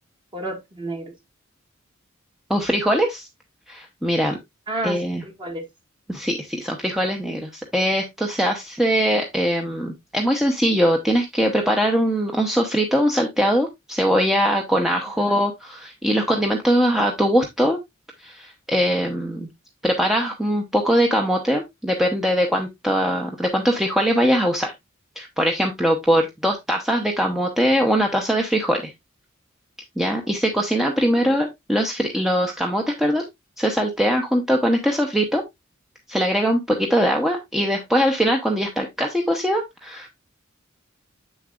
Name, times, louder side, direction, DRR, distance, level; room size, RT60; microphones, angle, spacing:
voice 1, 0.3-1.1 4.7-5.7 15.2-15.4 31.2-31.5, right 1 dB, 25° right, 1.8 m, -31 dB
voice 2, 2.5-3.3 3.7-4.4 4.8-5.2 6.1-17.8 18.2-19.5 19.8-24.7 25.2-28.9 30.0-33.2 33.6-35.4 36.1-40.1, equal, ahead, 0.8 m, -21 dB
7.8 x 6.6 x 2.4 m
head